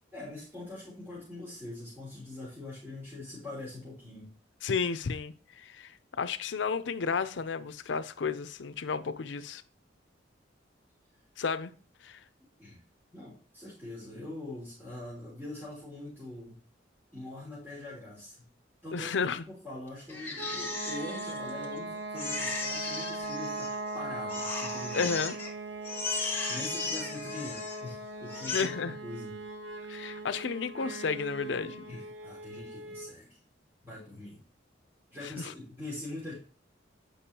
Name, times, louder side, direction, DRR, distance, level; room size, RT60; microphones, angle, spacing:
voice 1, 0.1-4.3 12.6-12.8 13.1-16.6 17.1-18.5 18.8-25.2 26.5-29.4 31.9-33.4 33.8-34.4 35.1-36.3, left 2 dB, 10° right, 3.2 m, -43 dB
voice 2, 4.6-5.9 6.2-9.6 11.4-11.7 12.0-12.2 18.9-19.4 24.9-25.3 28.5-29.0 29.9-31.8 35.2-35.5, left 5 dB, 75° left, 0.5 m, -32 dB
Crying sobbing, 20.1-21.8 22.2-23.9 24.3-25.5 25.8-27.9 28.3-28.6, left 4 dB, 10° left, 1.3 m, -36 dB
sound 1, 20.4-33.2, right 2 dB, 85° right, 1.0 m, -40 dB
8.5 x 5.3 x 2.9 m
head